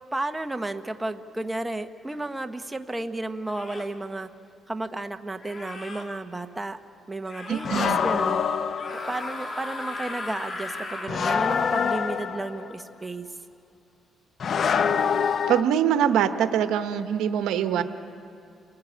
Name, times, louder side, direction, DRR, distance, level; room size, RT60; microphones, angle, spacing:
voice 1, 0.1-4.3 4.7-6.8 7.1-8.5 8.9-13.3, right 2 dB, 15° right, 7 dB, 1.0 m, -32 dB
sound 1, 2.1-2.3 3.5-4.0 5.4-6.1 7.3-8.0 8.7-11.2, left 2 dB, 35° left, 2.4 m, -37 dB
voice 2, 7.5-8.0 15.5-17.8, right 9 dB, 90° right, 9 dB, 1.0 m, -23 dB
sound 2, 7.6-9.3 11.1-12.7 14.4-15.6, left 6 dB, 55° left, 0.8 m, -25 dB
29.5 x 18.5 x 8.6 m, 2.4 s
cardioid pair, 90°, 0 cm